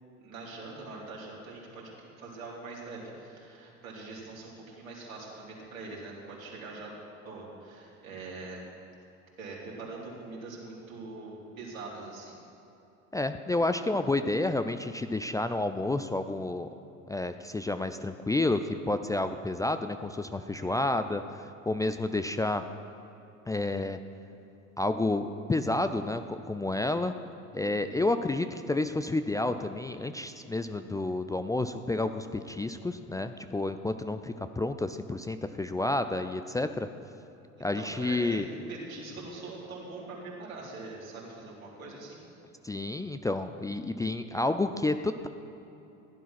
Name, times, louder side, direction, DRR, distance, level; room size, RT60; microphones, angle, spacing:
voice 1, 0.2-6.9 7.2-8.6 9.4-12.3 20.6-20.8 37.6-42.2, right 3 dB, 80° right, -4 dB, 3.8 m, -43 dB
voice 2, 13.1-16.7 17.1-22.6 23.5-24.0 24.8-27.1 27.5-36.9 37.6-38.5 42.6-45.3, left 2 dB, 10° left, 9 dB, 0.5 m, -30 dB
15.5 x 11.5 x 5.9 m, 3.0 s
figure-of-eight pair, 65°, 40 cm